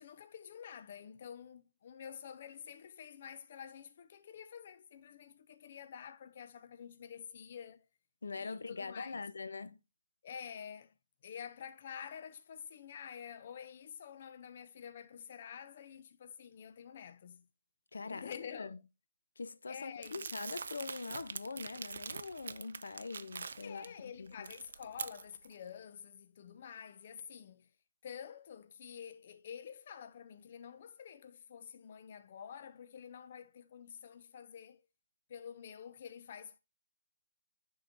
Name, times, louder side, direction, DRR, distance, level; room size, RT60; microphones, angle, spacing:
voice 1, 0.0-7.8 8.4-9.2 10.2-10.9 11.2-17.4 18.1-18.8 19.7-20.3 23.6-27.7 28.0-34.8 35.3-36.6, left 8 dB, 45° left, 0.3 m, -49 dB
voice 2, 8.2-9.8 17.9-18.8 19.4-24.5, left 4 dB, 80° left, 0.7 m, -43 dB
Crumpling crinkling, 20.0-23.9 24.3-25.5, right 5 dB, 70° right, 0.4 m, -44 dB
10.0 x 3.8 x 2.6 m
hypercardioid pair, 160°, 0 cm